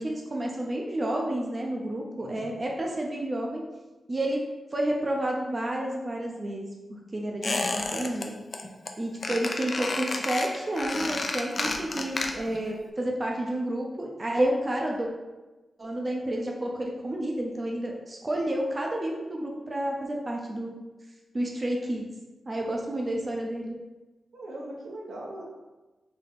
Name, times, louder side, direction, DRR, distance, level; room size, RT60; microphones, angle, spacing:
voice 1, 0.0-3.6 4.1-4.4 4.7-8.3 9.0-15.1 15.8-20.8 21.3-22.1 22.5-23.8, right 1 dB, 30° right, -1 dB, 0.5 m, -30 dB
voice 2, 2.1-2.6 24.3-25.4, right 1 dB, 90° right, -3 dB, 0.9 m, -40 dB
Squeak, 7.4-8.3 8.5-8.9 9.2-12.6 12.9-13.0, left 3 dB, 40° left, 0.4 m, -31 dB
3.9 x 2.7 x 3.6 m, 1.1 s
wide cardioid pair, 130°, 0 cm